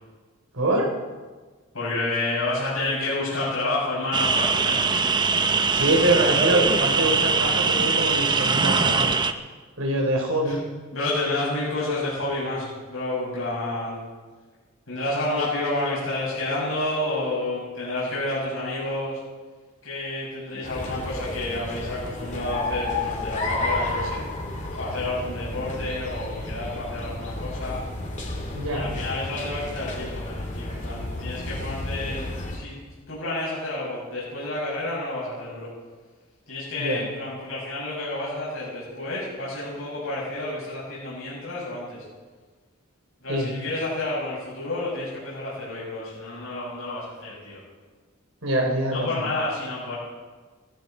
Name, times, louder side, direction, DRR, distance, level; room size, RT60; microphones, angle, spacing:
voice 1, 0.5-0.9 5.7-9.1 9.8-10.6 20.5-20.6 28.5-28.8 36.7-37.0 43.3-43.5 48.4-49.3, right 1 dB, 80° right, 0 dB, 3.5 m, -24 dB
voice 2, 1.7-4.8 10.4-10.6 10.9-14.0 14.9-19.2 19.8-24.2 24.7-27.8 28.7-32.8 33.1-35.7 36.5-42.0 43.2-47.6 48.9-49.9, left 2 dB, 75° left, -8 dB, 6.4 m, -30 dB
sound 1, 4.1-9.3, right 4 dB, 20° right, 0.6 m, -22 dB
sound 2, 20.6-32.6, left 2 dB, 35° left, 2.7 m, -32 dB
18.5 x 15.0 x 4.4 m, 1.4 s
head